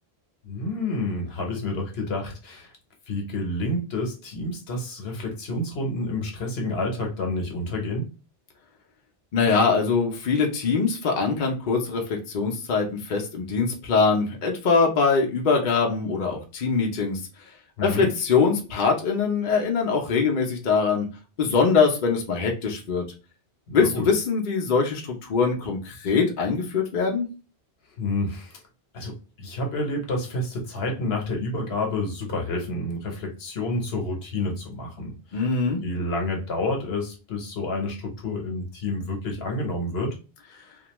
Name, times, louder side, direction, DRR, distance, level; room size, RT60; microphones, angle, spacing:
voice 1, 0.4-2.7 3.1-8.1 17.8-18.1 23.7-24.1 28.0-28.6 28.9-35.4 35.8-40.2, left 2 dB, 70° left, 2 dB, 1.0 m, -29 dB
voice 2, 9.3-17.2 17.8-21.1 21.4-23.0 23.7-27.3 35.3-35.8, left 5 dB, 55° left, 1 dB, 0.7 m, -23 dB
2.5 x 2.2 x 2.9 m, 0.32 s
omnidirectional pair, 1.1 m